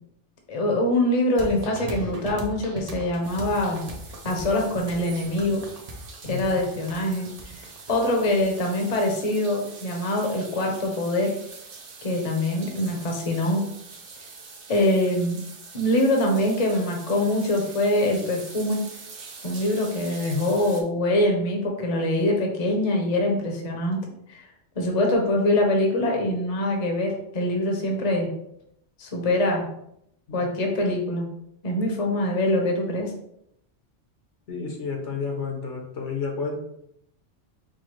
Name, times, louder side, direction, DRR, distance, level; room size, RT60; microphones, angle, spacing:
voice 1, 0.5-3.8 4.2-5.6 6.3-7.3 7.9-11.3 12.0-13.6 14.7-15.4 15.7-18.8 19.4-24.0 24.3-24.4 24.8-28.3 29.0-29.7 30.3-31.3 31.6-33.1, left 1 dB, 35° left, 1 dB, 0.8 m, -24 dB
sound 1, 1.4-8.9, right 2 dB, 40° right, 0.6 m, -38 dB
sound 2, 3.2-20.8, right 4 dB, 65° right, 1.0 m, -44 dB
voice 2, 6.2-6.6 30.4-30.5 34.5-36.6, left 5 dB, 75° left, 1 dB, 1.2 m, -31 dB
4.8 x 2.2 x 4.4 m, 0.75 s
omnidirectional pair, 1.2 m